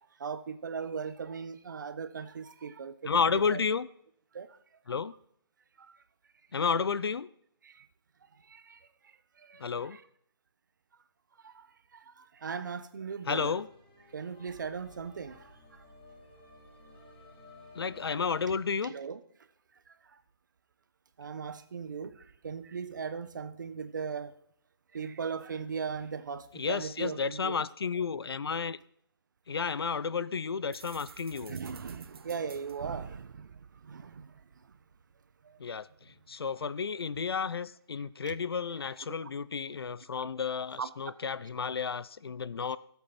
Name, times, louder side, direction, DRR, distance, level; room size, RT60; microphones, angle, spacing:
voice 1, 0.2-3.6 4.3-4.5 5.8-6.0 7.6-7.9 8.5-8.9 9.4-10.0 11.4-11.7 11.9-13.6 14.1-15.8 18.1-18.2 18.5-19.2 20.1-20.2 21.2-24.4 24.9-27.6 31.4-33.5 33.8-34.3 35.4-35.6 38.2-38.3 39.2-39.3 40.8-40.9, right 6 dB, 50° right, 1.0 m, -39 dB
voice 2, 3.0-3.9 4.9-5.1 6.5-7.3 9.6-10.0 13.3-13.7 17.7-18.9 26.5-28.8 29.5-31.6 35.6-42.8, left 5 dB, 70° left, 0.6 m, -32 dB
sound 1, 13.3-18.5, left 2 dB, 20° left, 3.3 m, -54 dB
sound 2, 30.7-34.6, right 6 dB, 70° right, 0.4 m, -48 dB
23.5 x 8.2 x 4.3 m
hypercardioid pair, 170°, 13 cm